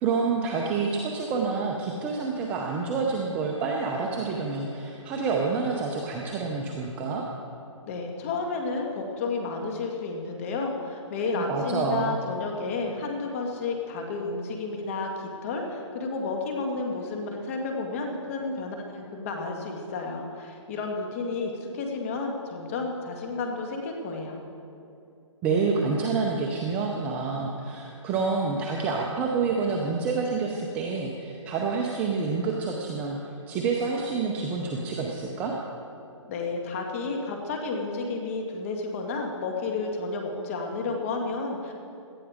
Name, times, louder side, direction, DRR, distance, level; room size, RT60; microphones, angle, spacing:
voice 1, 0.0-7.2 11.3-12.2 25.4-35.5, right 4 dB, 10° right, -1 dB, 0.5 m, -28 dB
voice 2, 7.9-24.4 36.3-41.7, left 3 dB, 25° left, 2 dB, 1.8 m, -31 dB
17.5 x 12.0 x 5.0 m, 2.7 s
hypercardioid pair, 165°, 17 cm